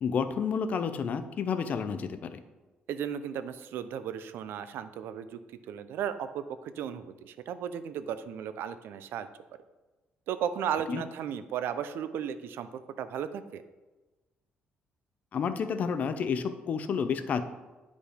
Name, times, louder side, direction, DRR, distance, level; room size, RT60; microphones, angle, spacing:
voice 1, 0.0-2.4 10.9-11.0 15.3-17.4, left 6 dB, 40° left, 11 dB, 0.5 m, -30 dB
voice 2, 2.9-5.4 5.7-9.3 10.3-13.6, right 8 dB, 75° right, 12 dB, 0.6 m, -35 dB
9.8 x 5.1 x 5.1 m, 1.2 s
cardioid pair, 175°, 4 cm